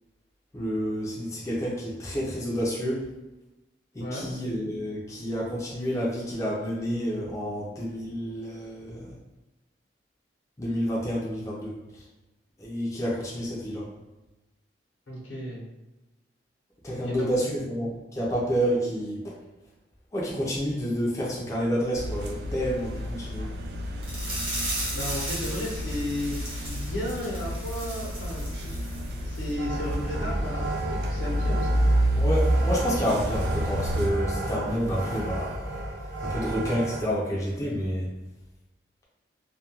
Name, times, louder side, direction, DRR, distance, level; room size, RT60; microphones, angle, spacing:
voice 1, 0.5-3.1 3.9-9.2 10.6-11.8 12.6-13.9 16.8-19.3 20.1-23.5 32.2-35.6 36.2-38.1, equal, 15° left, -5 dB, 0.4 m, -29 dB
voice 2, 15.1-15.6 17.0-17.5 24.9-28.8 29.2-31.8, left 1 dB, 85° left, -3 dB, 0.8 m, -34 dB
sound 1, 21.9-34.1, equal, 60° right, 0.3 m, -29 dB
sound 2, 24.0-29.1 29.3-29.5 29.9-30.0, right 1 dB, 30° right, 0.8 m, -36 dB
sound 3, 29.6-37.0, right 1 dB, 80° right, 0.7 m, -34 dB
2.3 x 2.2 x 2.9 m, 1.0 s
head